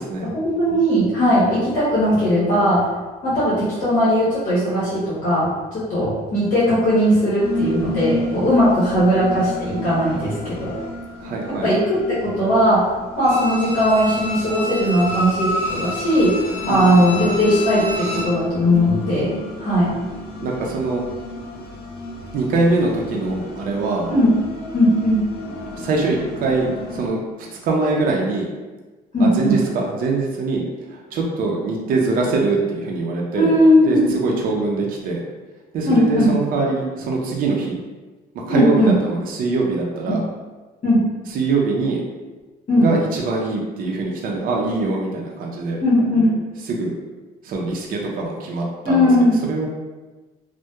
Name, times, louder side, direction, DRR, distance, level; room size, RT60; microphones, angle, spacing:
voice 1, 0.2-2.9 3.2-10.7 11.5-12.9 13.2-16.4 16.7-19.9 24.1-24.3 24.7-25.2 29.1-29.6 33.3-34.1 35.8-36.4 38.5-38.9 40.1-40.2 40.8-41.0 42.7-42.9 45.8-46.3 48.8-49.4, equal, 50° left, -10 dB, 0.9 m, -18 dB
sound 1, 7.4-27.1, left 1 dB, 70° left, 0.4 m, -32 dB
voice 2, 11.2-11.7 16.7-17.1 20.4-21.0 22.3-24.1 25.8-27.2 27.6-28.5 29.2-30.6 30.9-33.5 33.8-35.2 35.7-37.8 38.3-40.2 41.3-42.0 42.8-45.8 46.7-46.9 47.4-49.7, right 3 dB, 55° right, -1 dB, 0.5 m, -23 dB
Bowed string instrument, 13.2-18.4 18.7-18.8, left 1 dB, 15° right, 1.2 m, -28 dB
2.7 x 2.1 x 2.2 m, 1.2 s
cardioid pair, 110°, 17 cm